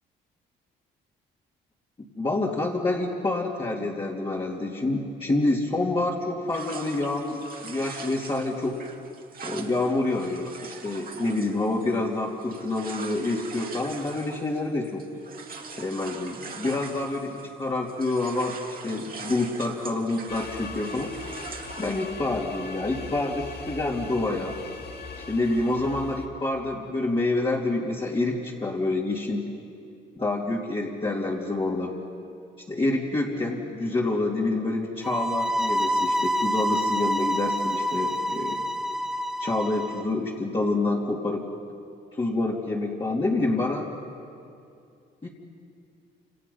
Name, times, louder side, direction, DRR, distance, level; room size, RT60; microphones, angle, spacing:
voice 1, 2.2-8.8 9.4-15.0 15.8-21.1 21.8-24.6 25.3-29.5 30.2-31.9 32.7-38.6 39.4-41.4 42.1-43.9 45.2-45.3, left 2 dB, 25° left, -5 dB, 3.0 m, -27 dB
sound 1, 6.5-17.6 17.9-22.2, right 5 dB, 45° right, 2.4 m, -42 dB
sound 2, 20.3-26.3, left 4 dB, 55° left, 2.2 m, -40 dB
sound 3, 35.0-40.0, equal, ahead, 1.3 m, -27 dB
29.0 x 27.5 x 5.6 m, 2.5 s
cardioid pair, 90°, 20 cm